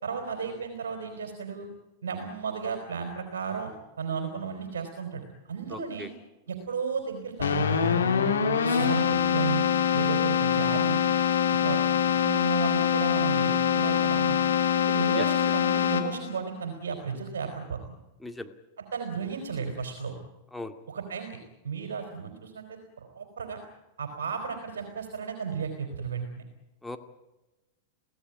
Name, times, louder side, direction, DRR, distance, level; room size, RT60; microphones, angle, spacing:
voice 1, 0.0-1.7 2.0-3.7 4.0-6.1 6.5-8.0 8.6-9.6 9.9-11.0 11.6-11.8 12.2-14.4 14.8-18.0 18.9-20.1 20.9-21.4 21.6-23.6 24.0-26.4, right 6 dB, 75° right, 5 dB, 3.7 m, -34 dB
voice 2, 5.7-6.1 15.1-15.3 18.2-18.5 20.5-20.7 26.8-27.0, left 2 dB, 5° left, 6 dB, 2.1 m, -38 dB
Keyboard (musical), 7.4-16.4, left 8 dB, 80° left, 3.1 m, -24 dB
24.0 x 17.0 x 9.2 m, 1.0 s
hypercardioid pair, 100°, 0 cm